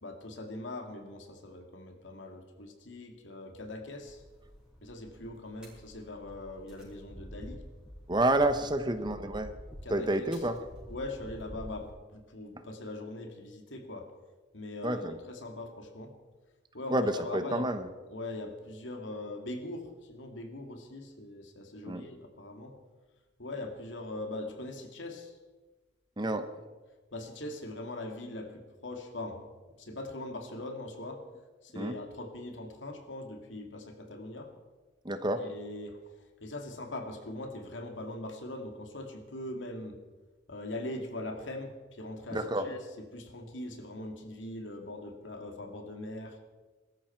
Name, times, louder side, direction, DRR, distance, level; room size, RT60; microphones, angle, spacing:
voice 1, 0.0-4.2 4.8-7.6 8.7-9.0 9.8-10.4 10.9-14.1 14.5-16.1 16.7-17.7 18.1-22.7 23.4-25.4 26.4-26.5 27.1-29.5 29.8-31.2 31.6-34.5 35.4-36.0 36.4-40.0 40.5-42.8 43.1-46.4, left 2 dB, 75° left, 4 dB, 2.4 m, -41 dB
sound 1, 4.0-11.9, equal, 5° right, 5.7 m, -49 dB
voice 2, 8.1-9.5 9.9-10.6 14.8-15.2 16.9-17.9 21.9-22.1 26.2-26.5 31.8-31.9 35.0-35.5 42.3-42.7, right 1 dB, 25° right, 9 dB, 0.9 m, -29 dB
22.0 x 13.5 x 4.6 m, 1.3 s
head